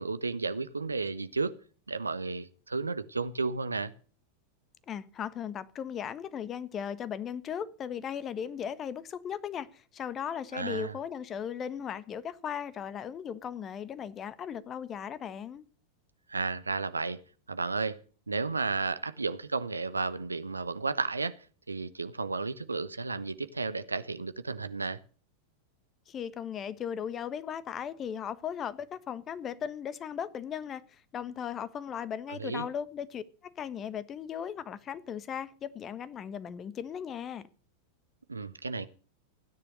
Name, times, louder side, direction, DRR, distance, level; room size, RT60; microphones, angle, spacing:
voice 1, 0.0-1.5 1.9-3.9 10.5-10.9 16.3-17.2 17.5-18.0 18.3-21.4 21.7-25.0 32.3-32.7 38.3-38.9, right 4 dB, 80° right, 1.0 m, -33 dB
voice 2, 4.9-15.6 26.1-30.8 31.1-37.4, left 8 dB, 25° left, 1.3 m, -37 dB
16.5 x 10.0 x 6.5 m
figure-of-eight pair, 90°, 0 cm